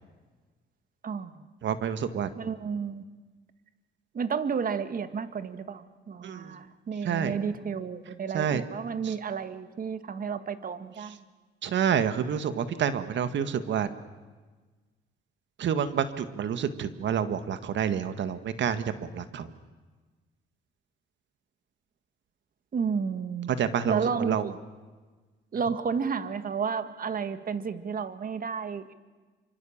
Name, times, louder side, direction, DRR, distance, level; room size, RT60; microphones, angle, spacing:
voice 1, 1.6-2.3 6.2-6.5 7.0-7.4 8.3-8.6 9.0-9.1 11.6-13.9 15.6-19.5 23.6-24.5, right 8 dB, 65° right, 11 dB, 1.8 m, -28 dB
voice 2, 2.4-3.0 4.1-11.2 22.7-23.5 23.9-24.5 25.5-28.9, right 6 dB, 45° right, 11 dB, 1.8 m, -32 dB
26.5 x 25.5 x 7.4 m, 1.3 s
cardioid pair, 90°, 20 cm